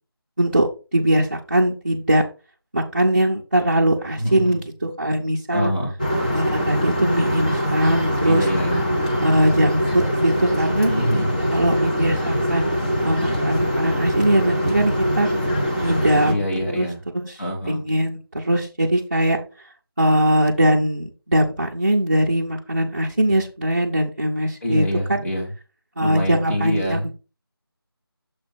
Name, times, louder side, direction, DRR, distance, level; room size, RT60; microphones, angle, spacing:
voice 1, 0.9-2.2 2.7-5.7 6.3-8.4 9.2-10.9 11.5-15.3 15.8-16.9 17.1-17.2 17.7-19.4 20.0-24.8 25.1-25.2 26.0-27.1, right 1 dB, 25° right, -4 dB, 0.7 m, -21 dB
voice 2, 4.1-4.6 5.5-6.0 8.2-8.9 10.9-11.4 16.3-17.0 17.4-17.9 24.6-25.5 26.0-27.1, equal, 40° left, -3 dB, 1.9 m, -25 dB
sound 1, 6.0-16.3, equal, 20° left, 0.9 m, -23 dB
7.0 x 3.3 x 5.9 m, 0.31 s
figure-of-eight pair, 175°, 13 cm